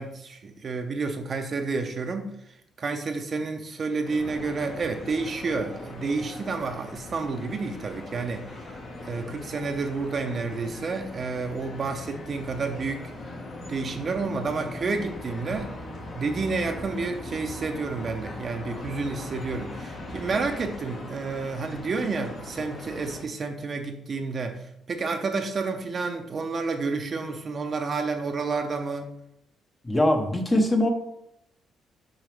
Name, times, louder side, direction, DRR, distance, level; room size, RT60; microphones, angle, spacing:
voice 1, 0.0-2.3 2.8-8.4 9.0-13.1 13.7-15.7 16.1-29.1, right 4 dB, 45° right, 5 dB, 0.7 m, -30 dB
sound 1, 4.0-23.2, left 2 dB, 55° left, 1.5 m, -40 dB
voice 2, 29.8-30.9, left 1 dB, 20° left, 4 dB, 0.9 m, -22 dB
6.3 x 4.9 x 3.4 m, 0.79 s
cardioid pair, 90°, 0 cm